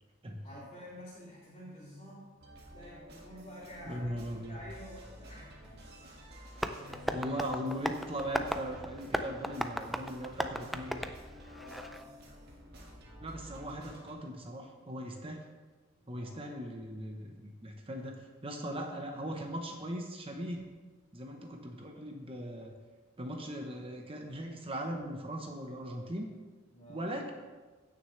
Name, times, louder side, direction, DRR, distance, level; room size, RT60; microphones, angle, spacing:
voice 1, 0.4-2.3 2.7-5.7 6.7-7.8 11.5-12.3 16.1-16.5 26.7-27.1, equal, 35° left, -12 dB, 3.1 m, -49 dB
sound 1, 2.4-14.1, equal, 55° right, 1.8 m, -52 dB
voice 2, 3.9-4.6 7.1-11.0 13.2-15.4 16.1-20.7 21.1-22.7 23.2-26.3 26.9-27.3, equal, 30° right, 3 dB, 0.9 m, -39 dB
Tap, 6.6-12.0, equal, ahead, 0.4 m, -37 dB
15.5 x 6.4 x 3.2 m, 1.3 s
head